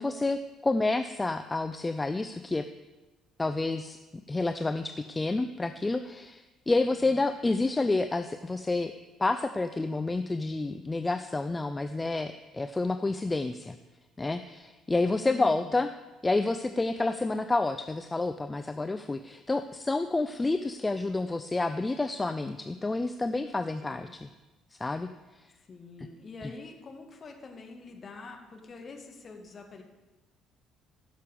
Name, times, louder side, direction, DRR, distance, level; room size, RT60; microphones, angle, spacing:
voice 1, 0.0-2.6 3.4-4.0 4.3-8.9 9.2-13.8 14.2-15.9 16.2-24.3 24.8-25.1, left 2 dB, 20° left, 9 dB, 0.5 m, -29 dB
voice 2, 6.9-7.3 15.2-15.7 23.9-24.2 25.7-29.8, left 3 dB, 40° left, 3 dB, 1.9 m, -46 dB
14.5 x 6.6 x 5.3 m, 1.1 s
figure-of-eight pair, 50°, 0 cm